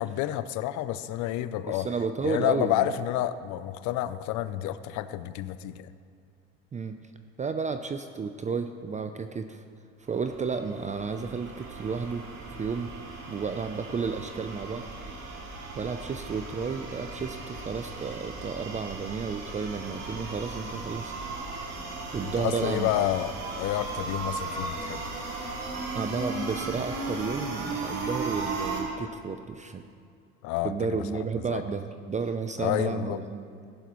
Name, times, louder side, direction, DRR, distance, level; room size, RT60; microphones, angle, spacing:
voice 1, 0.0-1.9 2.2-5.9 22.2-25.1 30.4-30.7 31.1-31.6 32.6-33.2, left 13 dB, 65° left, 14 dB, 0.6 m, -29 dB
voice 2, 1.7-2.9 6.7-7.0 7.4-9.6 10.1-12.2 12.6-12.9 13.3-14.8 15.7-21.1 22.1-23.1 25.9-29.8 30.6-33.7, right 5 dB, 25° right, 8 dB, 0.6 m, -32 dB
sound 1, 10.1-28.8, right 3 dB, 70° right, 2.7 m, -37 dB
15.0 x 11.5 x 3.1 m, 2.4 s
hypercardioid pair, 75°, 32 cm